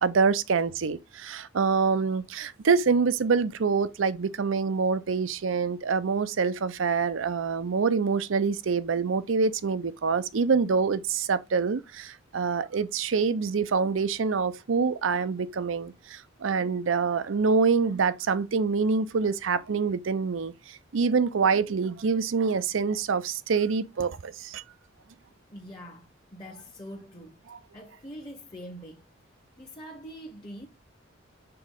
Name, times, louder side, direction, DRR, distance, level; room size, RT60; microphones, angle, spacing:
voice 1, 0.0-24.6, right 5 dB, 90° right, 0.5 m, -26 dB
voice 2, 25.5-27.4 27.7-29.0 29.6-30.7, equal, 25° left, 0.9 m, -43 dB
6.9 x 3.7 x 3.7 m
head